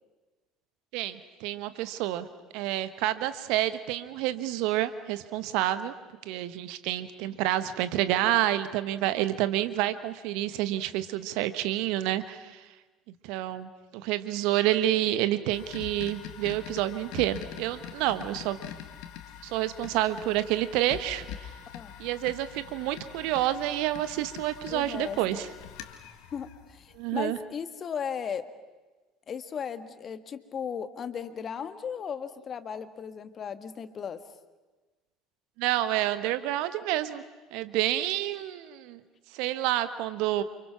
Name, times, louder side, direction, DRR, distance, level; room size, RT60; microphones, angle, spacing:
voice 1, 0.9-2.3 2.5-5.9 6.2-12.6 13.2-18.6 19.4-21.5 22.0-25.5 26.9-27.4 35.6-37.2 37.5-39.0 39.3-40.4, right 14 dB, 65° right, 12 dB, 1.3 m, -29 dB
sound 1, 15.5-27.3, left 10 dB, 60° left, 2.0 m, -44 dB
voice 2, 24.7-25.2 26.3-28.4 29.3-34.2, left 7 dB, 40° left, 10 dB, 1.7 m, -36 dB
29.5 x 26.5 x 6.1 m, 1.2 s
figure-of-eight pair, 60°, 0 cm